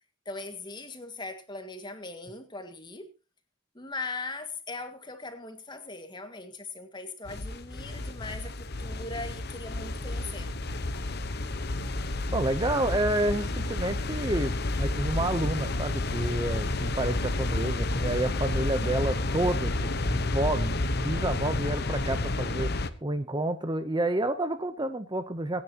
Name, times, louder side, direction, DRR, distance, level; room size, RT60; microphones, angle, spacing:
voice 1, 0.3-3.1 3.8-8.5 8.8-10.5, left 3 dB, 20° left, 1.8 m, -39 dB
sound 1, 7.3-22.9, left 2 dB, 45° left, 1.0 m, -30 dB
voice 2, 12.3-14.5 14.8-25.6, right 1 dB, 20° right, 0.7 m, -29 dB
25.0 x 10.0 x 2.9 m
head